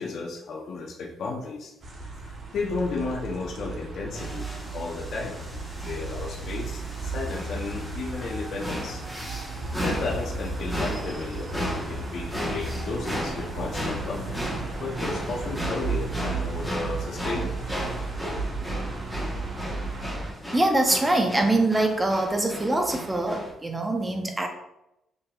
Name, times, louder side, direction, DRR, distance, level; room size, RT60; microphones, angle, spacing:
voice 1, 0.0-1.7 2.2-4.5 4.7-5.4 5.8-9.0 9.8-11.5 11.9-14.4 14.8-17.6, left 4 dB, 65° left, 0 dB, 0.6 m, -33 dB
sound 1, 1.8-20.3, right 3 dB, 45° right, 0.9 m, -34 dB
sound 2, 4.1-23.5, equal, ahead, 1.1 m, -36 dB
voice 2, 20.5-24.5, right 2 dB, 20° right, 4 dB, 0.7 m, -24 dB
5.2 x 2.8 x 2.3 m, 0.86 s
cardioid pair, 90°, 0 cm